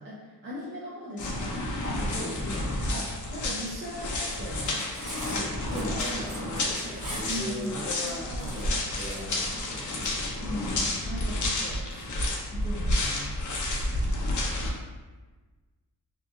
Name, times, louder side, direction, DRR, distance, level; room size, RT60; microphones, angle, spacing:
voice 1, 0.0-1.7 2.0-2.8 3.3-4.9 7.2-8.5 10.4-13.5, equal, 30° right, -7 dB, 0.5 m, -39 dB
sound 1, 1.2-14.7, left 1 dB, 50° left, 0.6 m, -30 dB
voice 2, 1.8-3.2 5.3-10.6 11.1-11.5, equal, 45° right, -6 dB, 1.0 m, -39 dB
Cutlery silverware, 4.5-10.1, right 1 dB, 60° right, 1.2 m, -41 dB
2.8 x 2.4 x 2.5 m, 1.3 s
wide cardioid pair, 90°, 38 cm